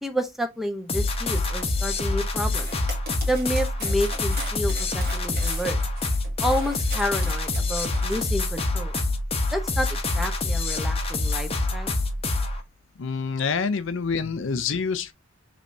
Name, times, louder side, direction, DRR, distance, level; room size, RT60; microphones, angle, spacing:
voice 1, 0.0-2.7 3.3-5.8 6.4-8.9 9.5-11.9, equal, ahead, 0.7 m, -29 dB
sound 1, 0.9-12.6, left 2 dB, 30° left, 0.8 m, -26 dB
sound 2, 2.5-8.2, right 3 dB, 50° right, 1.9 m, -40 dB
voice 2, 13.0-15.1, left 5 dB, 65° left, 0.5 m, -27 dB
5.2 x 3.2 x 2.6 m
head